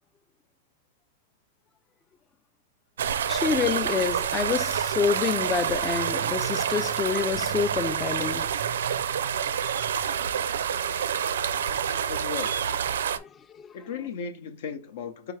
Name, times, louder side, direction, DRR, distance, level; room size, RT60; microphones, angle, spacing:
sound 1, 3.0-13.2, right 8 dB, 85° right, 0.4 m, -28 dB
voice 1, 3.3-8.5 13.2-13.3 13.5-13.6, left 6 dB, 15° left, 0.3 m, -28 dB
voice 2, 12.1-12.8 13.7-15.3, left 6 dB, 60° left, 0.8 m, -36 dB
4.7 x 3.3 x 3.2 m
supercardioid pair, 150°, 0 cm